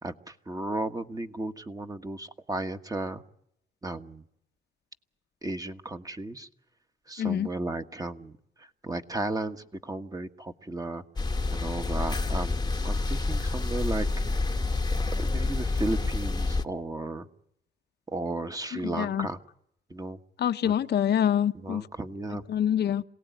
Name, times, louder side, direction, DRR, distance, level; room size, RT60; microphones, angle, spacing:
voice 1, 0.0-3.2 3.8-4.2 5.4-6.5 7.1-8.3 8.8-11.0 11.5-14.1 15.2-17.3 18.1-19.4 19.9-20.2 20.6-20.7 21.6-22.4, right 2 dB, 20° right, 1.4 m, -34 dB
voice 2, 7.2-7.5 18.7-19.3 20.4-21.8 22.5-23.0, left 9 dB, 55° left, 0.9 m, -26 dB
sound 1, 11.2-16.6, left 3 dB, 20° left, 1.1 m, -28 dB
26.5 x 18.0 x 9.4 m
cardioid pair, 90°, 20 cm